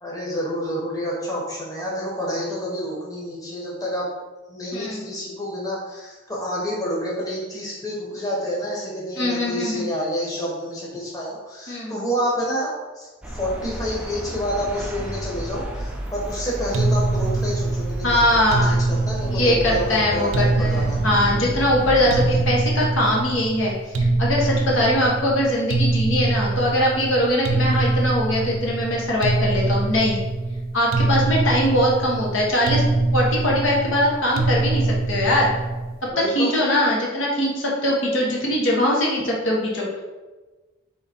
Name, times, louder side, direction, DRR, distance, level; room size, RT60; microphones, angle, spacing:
voice 1, 0.0-4.1 4.5-21.0 36.1-36.5, equal, 20° left, -5 dB, 1.0 m, -28 dB
voice 2, 4.7-5.1 9.2-9.9 11.7-11.9 18.0-18.9 19.2-30.2 30.7-32.8 33.1-35.5 36.3-40.0, left 1 dB, 80° left, -3 dB, 1.2 m, -21 dB
sound 1, 13.2-22.4, equal, 5° right, 0.4 m, -32 dB
sound 2, 16.7-36.0, right 2 dB, 85° right, 0.5 m, -24 dB
3.7 x 3.3 x 4.3 m, 1.2 s
head